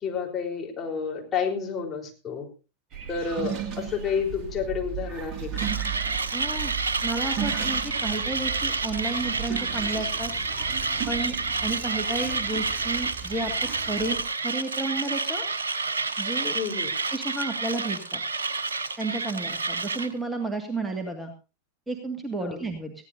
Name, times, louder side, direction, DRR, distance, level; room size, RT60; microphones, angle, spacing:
voice 1, 0.0-2.5 3.1-5.7 16.5-16.9 22.4-22.6, left 6 dB, 25° left, 1 dB, 4.0 m, -30 dB
sound 1, 2.9-14.2, right 8 dB, 35° right, 2.3 m, -35 dB
Mechanisms, 5.6-20.1, right 4 dB, 70° right, 1.3 m, -29 dB
voice 2, 6.3-6.7 7.0-10.3 11.1-11.4 11.6-13.5 13.9-15.4 16.2-16.6 17.1-18.2 19.0-21.3 21.9-22.9, right 2 dB, 10° right, 4 dB, 2.0 m, -32 dB
20.5 x 16.0 x 2.7 m, 0.31 s
figure-of-eight pair, 90°, 0 cm